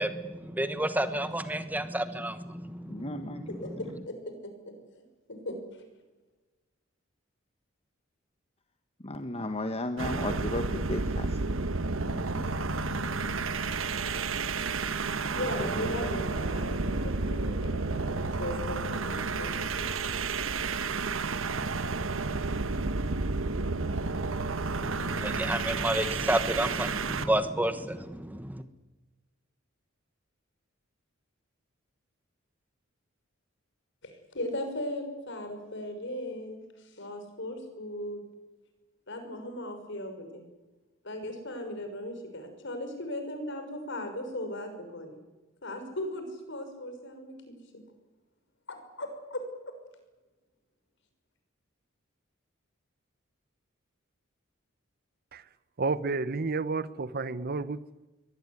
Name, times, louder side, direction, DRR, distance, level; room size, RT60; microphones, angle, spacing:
voice 1, 0.0-3.4 24.8-28.6, right 1 dB, 10° right, 10 dB, 1.2 m, -31 dB
voice 2, 2.9-3.7 9.0-11.4 12.0-12.5 15.6-16.1, left 1 dB, 30° left, 7 dB, 1.4 m, -35 dB
voice 3, 3.5-4.7 5.3-5.6 15.3-19.5 19.8-19.9 34.0-38.2 39.1-40.4 41.0-45.2 45.6-47.5 48.7-49.7, left 1 dB, 65° left, 6 dB, 6.2 m, -37 dB
sound 1, 10.0-27.3, right 3 dB, 75° right, 1.2 m, -31 dB
voice 4, 55.8-57.8, right 3 dB, 50° right, 17 dB, 0.8 m, -30 dB
23.5 x 18.0 x 9.8 m, 1.2 s
head